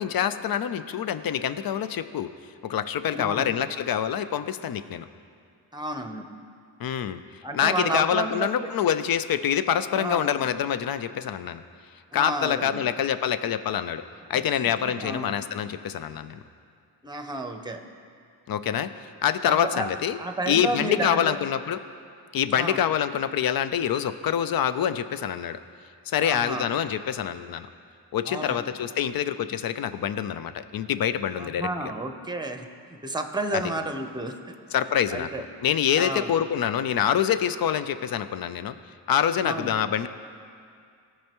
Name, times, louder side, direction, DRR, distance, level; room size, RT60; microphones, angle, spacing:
voice 1, 0.0-2.3 2.6-5.1 6.8-7.2 7.5-11.6 12.1-14.0 14.3-16.4 18.5-18.9 19.2-20.2 20.5-21.8 22.3-25.6 26.1-27.7 28.1-31.7 33.5-33.6 34.7-35.3 35.6-38.7 39.1-40.1, left 9 dB, 50° left, 12 dB, 0.5 m, -26 dB
voice 2, 3.1-3.5 5.7-6.3 7.4-8.7 9.9-10.5 12.1-12.8 14.5-14.7 15.0-15.3 17.0-17.8 19.4-19.9 20.2-21.4 22.5-22.8 26.2-26.7 28.3-28.7 31.4-34.5 34.9-35.4 36.0-36.3 39.4-39.9, right 2 dB, 10° right, 6 dB, 0.8 m, -32 dB
15.0 x 5.5 x 3.0 m, 2.3 s
cardioid pair, 55°, 47 cm